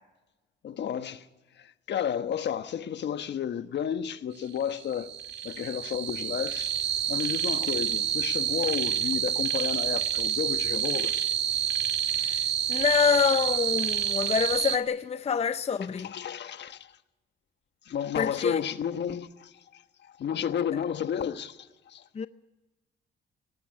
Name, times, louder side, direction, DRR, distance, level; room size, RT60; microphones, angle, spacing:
voice 1, 0.6-1.3 1.6-5.1 5.4-6.7 7.1-11.1 16.0-16.9 17.9-19.8 20.2-22.0, left 9 dB, 60° left, 1.3 m, -32 dB
sound 1, 4.7-14.8, right 9 dB, 60° right, 1.9 m, -28 dB
voice 2, 12.1-16.1 18.2-18.6 22.1-22.3, left 6 dB, 30° left, 0.7 m, -26 dB
19.0 x 17.5 x 9.9 m
cardioid pair, 90°, 20 cm